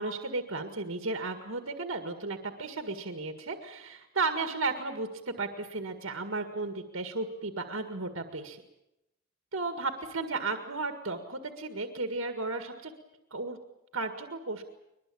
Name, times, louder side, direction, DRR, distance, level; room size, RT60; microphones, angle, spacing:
voice 1, 0.0-8.6 9.5-12.9 13.3-13.6 13.9-14.6, right 3 dB, 65° right, 6 dB, 1.9 m, -34 dB
22.0 x 22.0 x 8.6 m, 0.90 s
head